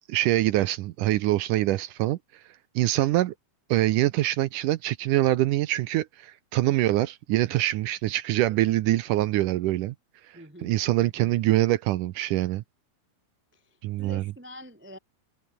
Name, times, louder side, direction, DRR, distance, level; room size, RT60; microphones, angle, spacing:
voice 1, 0.1-2.2 2.8-3.3 3.7-10.0 10.6-12.6 13.8-14.2, right 15 dB, 75° right, 2.0 m, -24 dB
voice 2, 10.3-10.7 11.0-11.3 13.5-15.0, equal, 5° right, 2.4 m, -46 dB
omnidirectional pair, 4.3 m